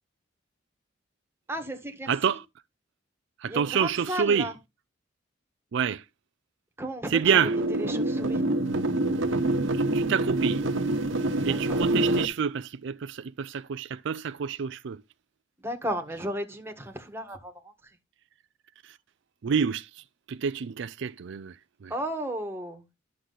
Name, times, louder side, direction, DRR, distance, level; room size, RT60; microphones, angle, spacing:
voice 1, 1.5-2.4 3.5-4.6 6.8-7.5 7.8-8.5 11.5-11.8 15.6-17.7 21.9-22.8, right 1 dB, 10° right, 1.5 m, -34 dB
voice 2, 2.1-2.4 3.4-4.5 5.7-6.0 7.1-7.5 9.9-10.6 11.4-15.0 18.8-19.0 19.4-21.6 21.8-21.9, right 7 dB, 65° right, 0.4 m, -27 dB
sound 1, 7.2-12.2, right 2 dB, 85° right, 1.2 m, -26 dB
11.5 x 6.6 x 4.0 m
head